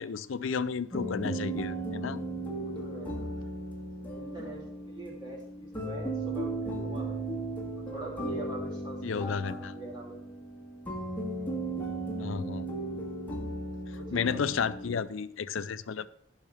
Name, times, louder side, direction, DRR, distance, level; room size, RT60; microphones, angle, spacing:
voice 1, 0.0-2.2 9.0-9.7 12.2-12.7 14.1-16.1, left 6 dB, 75° left, 0.5 m, -32 dB
sound 1, 0.9-15.0, right 2 dB, 10° left, 1.8 m, -36 dB
voice 2, 2.6-3.3 4.0-7.3 7.7-10.2 12.8-12.9 13.9-14.4, right 1 dB, 25° right, 3.1 m, -44 dB
15.5 x 5.6 x 3.5 m
head